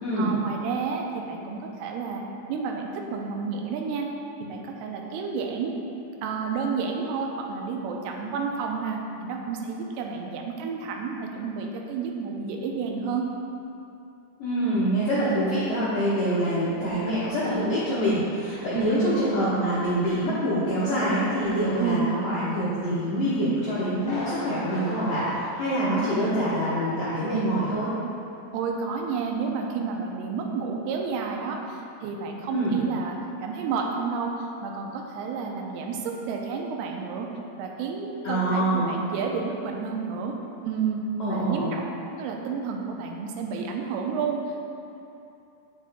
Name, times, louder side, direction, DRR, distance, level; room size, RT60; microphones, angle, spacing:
voice 1, 0.2-2.2 2.5-4.1 4.4-5.8 6.2-13.3 18.7-18.9 21.8-22.1 25.8-26.1 27.3-27.5 28.5-37.3 37.6-40.4 40.7-41.0 41.3-44.4, right 5 dB, 80° right, 1 dB, 2.4 m, -30 dB
voice 2, 14.4-27.9 32.5-32.8 38.2-38.9 41.2-41.7, right 1 dB, 90° left, -12 dB, 1.4 m, -25 dB
Thunder, 24.0-26.6 26.8-26.9 27.5-27.6, left 1 dB, 60° left, 2.2 m, -37 dB
7.4 x 7.3 x 2.2 m, 2.7 s
omnidirectional pair, 4.8 m